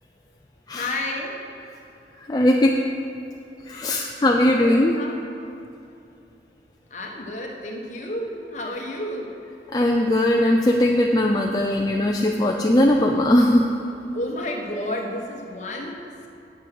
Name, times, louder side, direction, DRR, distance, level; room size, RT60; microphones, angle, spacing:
voice 1, 0.7-1.4 3.7-4.0 4.5-5.2 6.9-9.3 14.1-16.3, left 1 dB, 40° left, 0 dB, 1.2 m, -31 dB
voice 2, 2.3-2.7 3.7-4.9 9.7-13.7, left 1 dB, 20° left, 0 dB, 0.4 m, -19 dB
8.6 x 7.3 x 6.1 m, 2.7 s
head